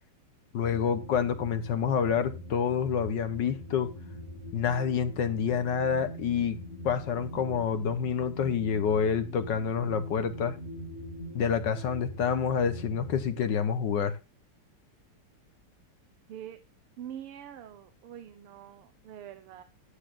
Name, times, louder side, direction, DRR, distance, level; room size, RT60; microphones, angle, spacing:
voice 1, 0.5-3.9 4.5-6.6 6.8-10.6 11.3-14.2, left 7 dB, 60° left, 1.4 m, -28 dB
sound 1, 0.6-13.3, equal, 25° left, 6.4 m, -42 dB
voice 2, 17.0-19.6, right 10 dB, 85° right, 1.8 m, -44 dB
15.0 x 9.8 x 2.4 m
omnidirectional pair, 2.4 m